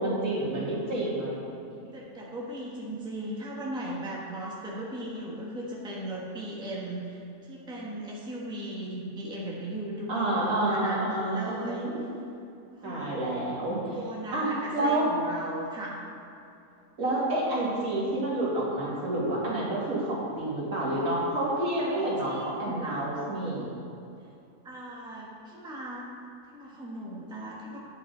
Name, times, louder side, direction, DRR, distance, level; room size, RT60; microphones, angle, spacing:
voice 1, 0.0-1.9 10.1-12.0 12.8-13.8 14.3-15.1 17.0-23.7, right 1 dB, 65° right, -6 dB, 2.5 m, -29 dB
voice 2, 1.9-11.9 12.7-13.2 13.5-16.0 21.8-22.8 24.6-26.1 26.5-27.8, right 1 dB, 5° right, -4 dB, 1.1 m, -38 dB
9.1 x 8.4 x 3.8 m, 2.6 s
omnidirectional pair, 1.6 m